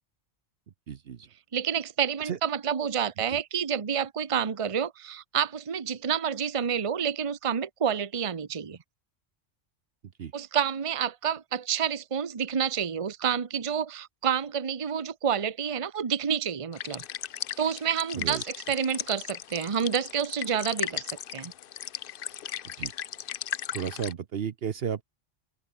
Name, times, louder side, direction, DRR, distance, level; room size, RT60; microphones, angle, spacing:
voice 1, 0.9-1.3 2.2-2.4 3.3-3.4 10.2-10.3 18.1-18.4 22.6-22.9 23.7-25.0, right 7 dB, 55° right, 1.0 m, -33 dB
voice 2, 1.5-8.8 10.3-17.0 17.6-21.5, right 8 dB, 30° right, 0.9 m, -29 dB
sound 1, 16.7-24.1, left 10 dB, 55° left, 0.7 m, -37 dB
open air
omnidirectional pair, 1.3 m